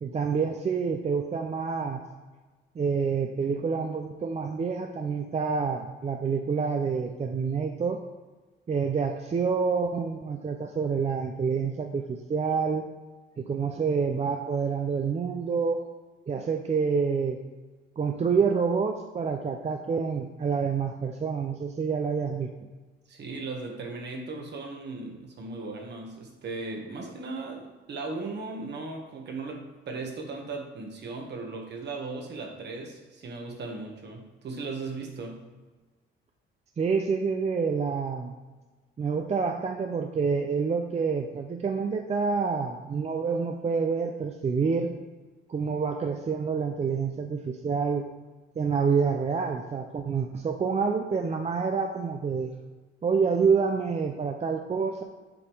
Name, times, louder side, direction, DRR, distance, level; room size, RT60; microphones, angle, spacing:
voice 1, 0.0-2.0 2.8-8.0 8.7-12.9 13.4-15.8 16.3-17.4 18.0-22.5 36.8-38.3 39.0-44.9 45.5-48.1 48.6-52.5 53.0-55.0, right 5 dB, 35° right, 4 dB, 0.6 m, -27 dB
voice 2, 23.1-35.4, right 3 dB, 60° right, 1 dB, 1.6 m, -37 dB
7.1 x 5.1 x 4.8 m, 1.3 s
cardioid pair, 90°, 20 cm